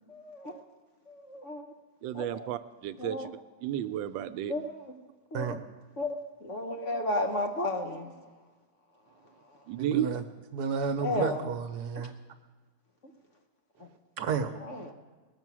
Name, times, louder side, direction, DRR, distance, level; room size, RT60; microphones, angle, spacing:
voice 1, 0.1-0.6 1.1-1.7 2.1-2.5 3.0-3.3 4.5-4.8 5.3-5.6 6.0-8.1 11.0-11.4 14.7-14.9, left 1 dB, 50° left, 3 dB, 1.1 m, -33 dB
voice 2, 2.0-3.3 3.6-4.5 9.7-10.1, right 10 dB, 80° right, 12 dB, 1.3 m, -32 dB
voice 3, 9.8-10.2 10.5-12.1 14.2-14.5, right 6 dB, 65° right, 8 dB, 1.2 m, -31 dB
19.5 x 7.1 x 6.1 m, 1.3 s
omnidirectional pair, 2.1 m